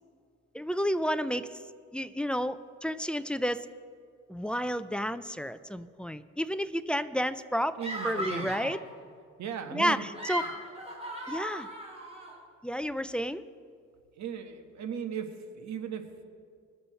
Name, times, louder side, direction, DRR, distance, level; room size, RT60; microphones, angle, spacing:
voice 1, 0.5-1.6 1.9-3.7 4.3-7.8 8.0-8.8 9.7-10.5 11.3-11.7 12.6-13.4, equal, 5° left, 13 dB, 0.4 m, -31 dB
voice 2, 7.7-8.7 9.4-10.0 14.2-15.3 15.6-16.0, right 8 dB, 65° right, 7 dB, 1.3 m, -37 dB
sound 1, 7.8-8.8 10.0-12.4, equal, 20° right, 2.7 m, -37 dB
20.5 x 7.1 x 4.3 m, 2.2 s
cardioid pair, 90°, 30 cm